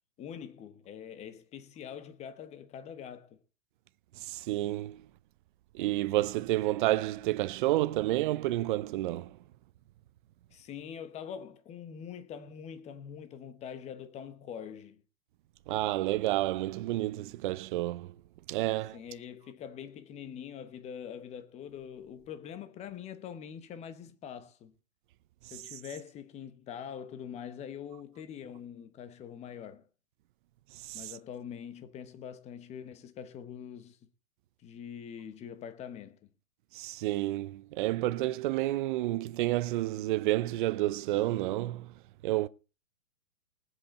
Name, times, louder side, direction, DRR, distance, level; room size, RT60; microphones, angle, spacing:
voice 1, 0.2-3.4 10.5-15.0 18.9-24.7 25.5-29.9 30.9-34.1 34.6-36.3, left 8 dB, 15° left, 0.9 m, -44 dB
voice 2, 4.2-5.1 5.7-9.4 15.7-18.1 18.5-19.0 25.4-25.6 30.7-31.1 36.7-41.9 42.2-42.5, right 16 dB, 40° right, 0.6 m, -30 dB
19.5 x 8.0 x 4.2 m
hypercardioid pair, 140°, 41 cm